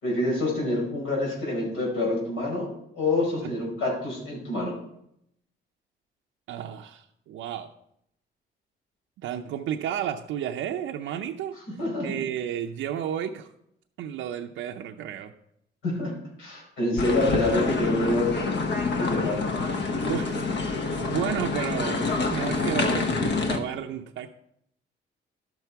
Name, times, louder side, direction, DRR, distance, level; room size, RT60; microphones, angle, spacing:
voice 1, 0.0-2.7 2.9-4.7 11.8-12.1 15.8-18.3 19.0-19.5, left 2 dB, 85° left, -2 dB, 4.8 m, -27 dB
voice 2, 6.5-7.7 9.2-11.6 12.0-13.5 14.0-15.3 20.1-20.4 20.7-24.3, right 9 dB, 85° right, 2 dB, 0.6 m, -32 dB
sound 1, 17.0-23.6, left 3 dB, 60° left, 1.2 m, -27 dB
11.5 x 7.0 x 4.5 m, 0.76 s
cardioid pair, 90°, 20 cm